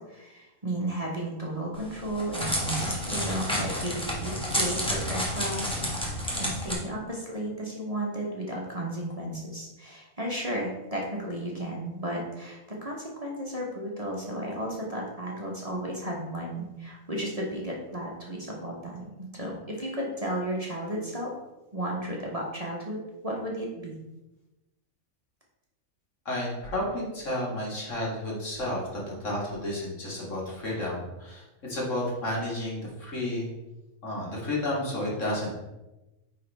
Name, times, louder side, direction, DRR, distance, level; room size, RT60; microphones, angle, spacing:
voice 1, 0.1-5.8 6.4-21.3 21.7-24.0, right 1 dB, 25° right, -3 dB, 1.1 m, -34 dB
Crackle, 1.8-6.7, equal, 5° left, 1.3 m, -30 dB
voice 2, 26.3-33.5 34.0-35.5, left 1 dB, 55° left, -4 dB, 2.2 m, -31 dB
9.4 x 3.9 x 3.4 m, 1.0 s
omnidirectional pair, 1.5 m